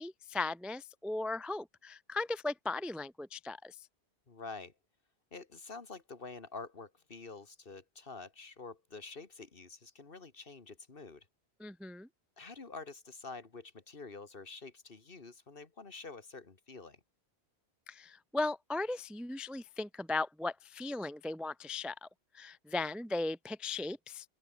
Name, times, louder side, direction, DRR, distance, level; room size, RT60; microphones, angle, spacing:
voice 1, 0.0-3.8 11.6-12.1 17.9-22.1 22.3-24.3, left 2 dB, ahead, 0.3 m, -37 dB
voice 2, 4.3-4.7 5.3-11.3 12.4-17.0, left 4 dB, 55° left, 2.1 m, -47 dB
open air
omnidirectional pair, 1.1 m